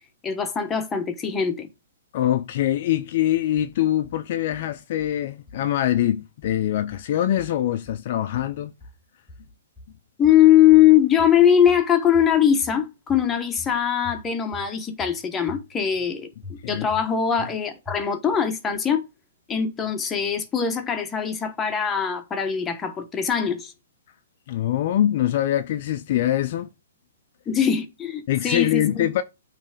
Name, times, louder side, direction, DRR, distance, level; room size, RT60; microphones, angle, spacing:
voice 1, 0.2-1.7 10.2-19.0 19.5-23.7 27.5-29.1, left 9 dB, 15° left, 1.1 m, -21 dB
voice 2, 2.1-8.7 16.6-16.9 24.5-26.7 28.3-29.2, left 12 dB, 50° left, 0.5 m, -23 dB
sound 1, 4.0-4.2 4.5-5.2 5.5-6.2 6.4-7.1 7.4-8.1 8.3-9.0 9.3-10.0 10.2-10.9 11.2-11.9 12.1-12.8 13.1-13.7 14.0-14.7 15.0-15.6 15.9-16.1 16.4-17.1 17.4-17.5 17.9-18.4, left 3 dB, 5° right, 2.1 m, -43 dB
8.6 x 3.3 x 4.9 m
hypercardioid pair, 145°, 0 cm